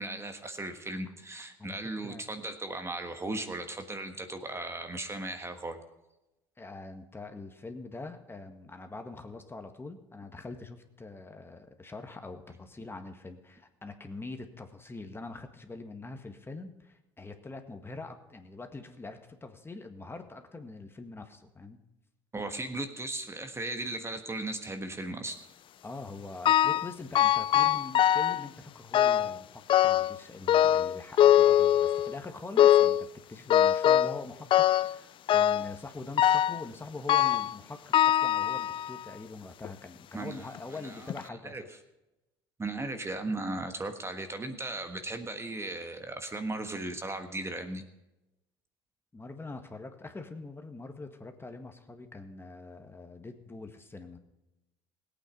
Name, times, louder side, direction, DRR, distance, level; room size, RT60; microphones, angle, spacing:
voice 1, 0.0-5.8 22.3-25.4 40.1-40.4 40.8-41.1 41.4-41.6 42.6-47.8, right 2 dB, 20° right, 7 dB, 1.5 m, -36 dB
voice 2, 6.6-21.8 25.8-41.7 49.1-54.2, left 3 dB, 20° left, 6 dB, 1.7 m, -44 dB
sound 1, 26.4-26.9 27.1-28.4 28.9-29.4 29.7-30.2 30.5-32.1 32.6-33.0 33.5-34.2 34.5-35.0 35.3-35.7 36.2-36.6 37.1-37.5 37.9-39.0 39.6-39.7 40.5-40.6 41.1-41.2, left 11 dB, 40° left, 0.4 m, -23 dB
18.0 x 8.8 x 5.2 m, 0.97 s
hypercardioid pair, 70°, 13 cm